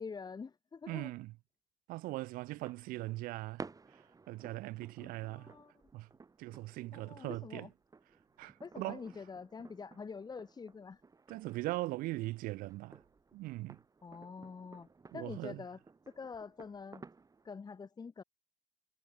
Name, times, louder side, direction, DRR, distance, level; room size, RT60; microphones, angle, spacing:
voice 1, 0.0-1.1 5.0-5.7 6.9-7.7 8.6-11.0 14.0-15.8 16.1-17.0 17.4-18.2, left 5 dB, 20° left, 0.9 m, -46 dB
voice 2, 0.9-1.3 1.9-3.6 3.9-4.0 4.3-5.5 5.9-6.1 6.4-7.7 8.4-9.0 11.3-13.0 13.3-13.8 15.1-15.6, right 19 dB, 50° right, 0.5 m, -40 dB
sound 1, 2.4-17.5, right 4 dB, 20° right, 1.2 m, -56 dB
figure-of-eight pair, 55°, 19 cm